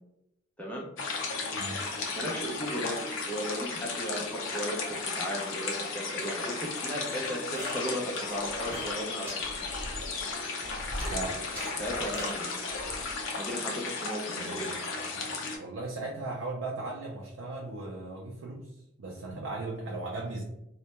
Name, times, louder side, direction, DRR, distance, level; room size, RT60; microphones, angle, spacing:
voice 1, 0.6-0.9 2.1-9.5 11.8-12.5 13.4-14.8, equal, 5° left, -3 dB, 0.4 m, -36 dB
sound 1, 1.0-15.6, left 4 dB, 65° left, 0.5 m, -35 dB
voice 2, 1.5-2.1 11.1-11.4 14.4-20.4, right 2 dB, 75° right, -1 dB, 0.4 m, -38 dB
sound 2, 7.6-9.0 9.3-9.4 9.9-10.0 10.4-11.7 12.1-12.9, equal, 10° right, 0.8 m, -41 dB
sound 3, 8.3-8.9 9.3-11.2 11.7-12.3 12.6-13.3, equal, 30° left, 0.8 m, -42 dB
2.1 x 2.1 x 2.8 m, 0.85 s
head